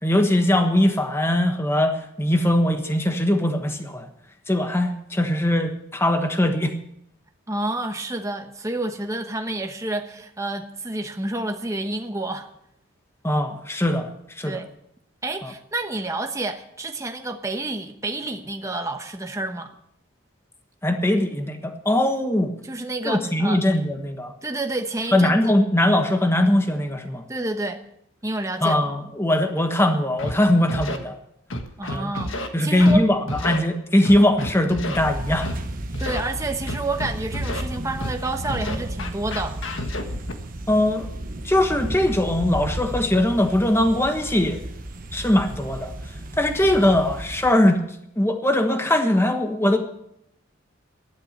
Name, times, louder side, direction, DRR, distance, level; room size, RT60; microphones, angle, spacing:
voice 1, 0.0-4.1 4.5-6.7 13.2-14.1 14.4-14.6 15.4-15.5 20.8-22.5 23.0-24.3 25.1-27.2 28.6-31.2 31.9-32.1 32.5-35.5 40.7-41.1 41.4-44.6 45.1-45.9 46.4-47.8 48.2-49.8, left 1 dB, 10° left, 5 dB, 1.4 m, -21 dB
voice 2, 7.5-12.5 14.4-14.7 15.2-19.7 22.6-23.6 24.4-25.5 27.3-27.8 28.2-28.8 31.8-33.1 36.0-39.6, right 2 dB, 15° right, 5 dB, 1.0 m, -29 dB
Scratching (performance technique), 30.2-30.3 30.7-31.0 31.5-32.5 32.8-33.0 33.3-33.6 34.0-35.0 35.4-35.6 35.9-36.2 36.7-37.6 38.0-38.2 38.5-40.3, left 1 dB, 70° left, 1.6 m, -30 dB
sound 1, 34.9-47.5, right 1 dB, 40° right, 1.1 m, -33 dB
13.0 x 11.5 x 6.6 m, 0.77 s
head